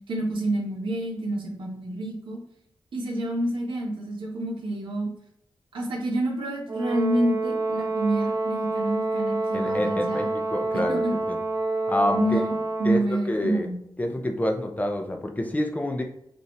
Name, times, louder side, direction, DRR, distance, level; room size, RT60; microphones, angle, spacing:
voice 1, 0.1-2.4 2.9-5.1 5.7-10.3 10.9-11.2 12.1-13.8, right 1 dB, 80° right, -1 dB, 1.4 m, -28 dB
Brass instrument, 6.7-13.1, right 2 dB, 45° right, 1.0 m, -28 dB
voice 2, 9.5-11.4 11.9-12.4 12.8-13.7 14.0-16.0, left 1 dB, 20° left, 3 dB, 0.6 m, -27 dB
5.3 x 2.6 x 3.2 m, 0.75 s
wide cardioid pair, 120°, 8 cm